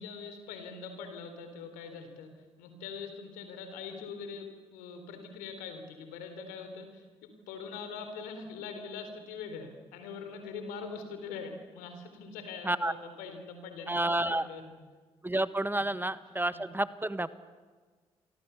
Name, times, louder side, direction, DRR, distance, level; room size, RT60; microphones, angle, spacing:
voice 1, 0.0-2.3 2.6-14.8 15.7-15.9 16.2-16.6, left 5 dB, 80° left, 7 dB, 3.8 m, -43 dB
voice 2, 13.9-14.5 15.2-17.3, right 1 dB, 15° right, 14 dB, 1.4 m, -30 dB
30.0 x 24.0 x 7.1 m, 1.5 s
hypercardioid pair, 45°, 14 cm